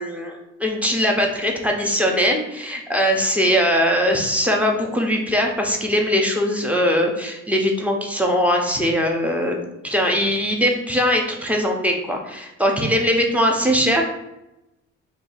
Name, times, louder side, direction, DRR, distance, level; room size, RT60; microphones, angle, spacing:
voice 1, 0.0-14.0, equal, 5° right, 1 dB, 0.6 m, -21 dB
2.7 x 2.3 x 4.1 m, 0.93 s
cardioid pair, 90°, 30 cm